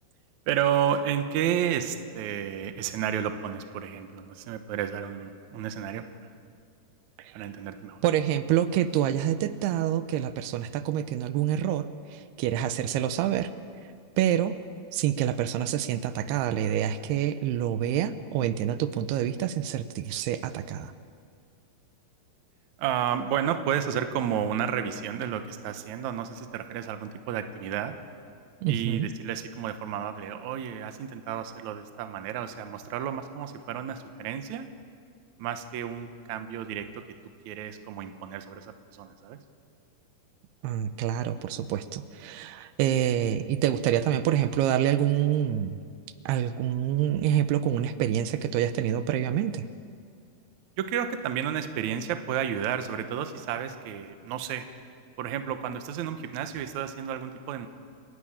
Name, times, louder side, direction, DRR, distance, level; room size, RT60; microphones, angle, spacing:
voice 1, 0.5-6.3 7.3-8.0 22.8-27.9 28.7-34.7 35.4-37.0 37.5-39.4 50.8-54.7 55.2-57.7, right 9 dB, 70° right, 8 dB, 1.9 m, -31 dB
voice 2, 8.0-13.5 14.2-14.6 14.9-20.9 28.6-29.1 40.6-45.8 46.3-49.7, right 11 dB, 85° right, 12 dB, 2.8 m, -27 dB
29.5 x 11.5 x 8.7 m, 2.2 s
omnidirectional pair, 4.6 m